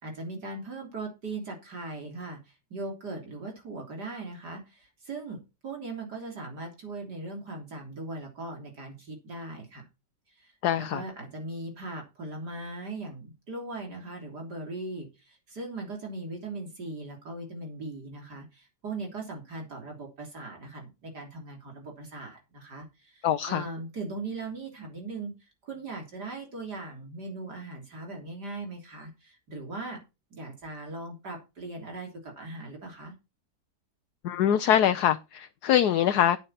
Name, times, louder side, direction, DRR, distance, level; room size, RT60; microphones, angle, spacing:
voice 1, 0.0-9.8 10.3-30.0 30.3-33.1, right 2 dB, 75° right, 3.9 m, -39 dB
voice 2, 10.6-11.0 23.2-23.6 34.2-36.4, left 10 dB, 75° left, 1.3 m, -23 dB
12.0 x 8.9 x 4.2 m
omnidirectional pair, 1.8 m